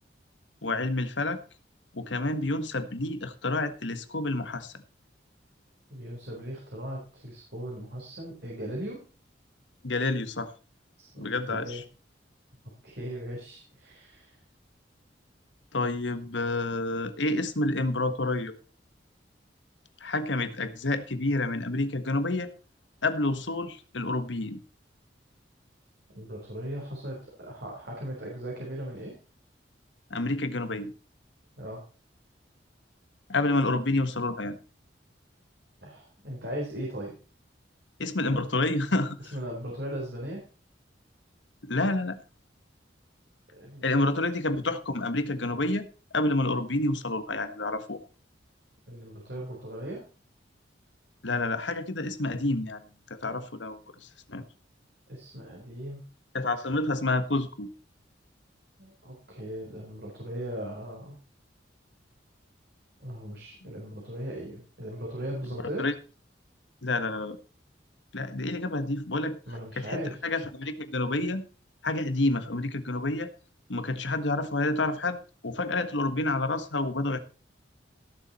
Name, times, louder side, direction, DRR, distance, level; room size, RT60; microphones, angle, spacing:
voice 1, 0.6-1.4 1.9-4.7 9.8-10.5 11.2-11.8 15.7-18.5 20.0-22.5 23.0-24.6 30.1-30.9 33.3-34.5 38.0-39.3 41.6-42.2 43.8-45.9 46.1-48.0 51.2-52.8 53.1-54.4 56.3-57.7 65.8-65.9 66.8-67.4 68.1-69.4 69.8-71.4 71.8-73.3 73.7-75.2 75.4-77.2, left 2 dB, 85° left, 10 dB, 1.5 m, -29 dB
voice 2, 5.9-9.0 11.0-11.8 12.8-14.4 26.1-29.1 31.6-31.8 35.8-37.2 38.3-38.4 39.3-40.4 43.5-44.1 48.9-50.0 55.1-56.0 58.8-61.2 63.0-65.8 69.5-70.2, right 1 dB, 60° right, -2 dB, 4.2 m, -38 dB
17.0 x 7.3 x 4.2 m, 0.36 s
head